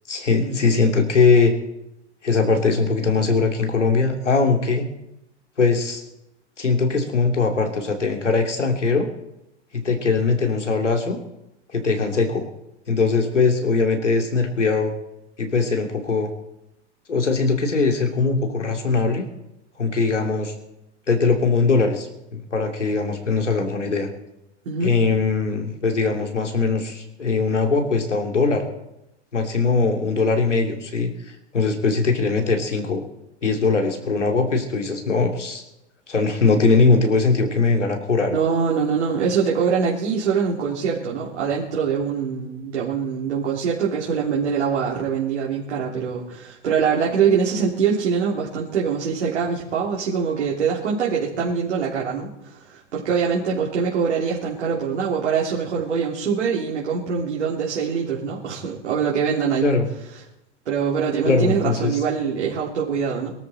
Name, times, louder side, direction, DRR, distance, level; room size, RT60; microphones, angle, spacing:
voice 1, 0.1-1.5 2.2-4.9 5.6-6.0 6.6-9.1 9.7-11.2 11.7-12.5 12.9-14.9 15.4-16.3 17.1-19.3 19.8-20.5 21.1-22.1 22.3-24.1 24.8-28.7 29.3-31.1 31.5-33.0 33.4-35.6 36.1-38.4 59.6-59.8 61.2-61.9, left 4 dB, 85° left, 3 dB, 3.2 m, -20 dB
voice 2, 38.3-59.7 60.6-63.3, right 6 dB, 70° right, -4 dB, 3.5 m, -23 dB
23.0 x 13.0 x 4.4 m, 0.86 s
figure-of-eight pair, 95°, 35 cm